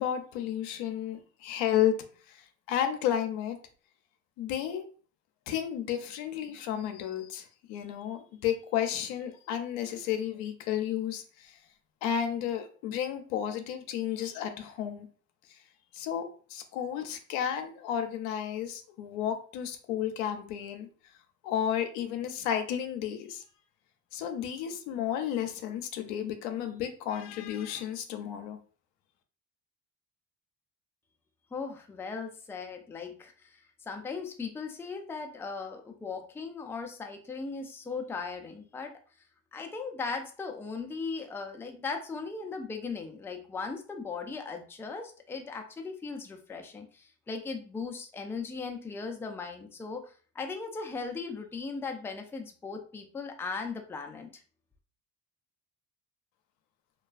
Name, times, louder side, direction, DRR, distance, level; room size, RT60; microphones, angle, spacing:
voice 1, 0.0-2.0 2.3-3.6 4.4-4.9 5.5-11.6 12.0-15.1 15.5-15.6 15.9-20.9 21.4-23.4 24.1-28.6, left 10 dB, 80° left, 6 dB, 0.5 m, -32 dB
voice 2, 31.5-38.9 39.5-54.3, left 4 dB, 5° left, 3 dB, 0.4 m, -38 dB
2.3 x 2.3 x 2.3 m, 0.41 s
hypercardioid pair, 65°, 40 cm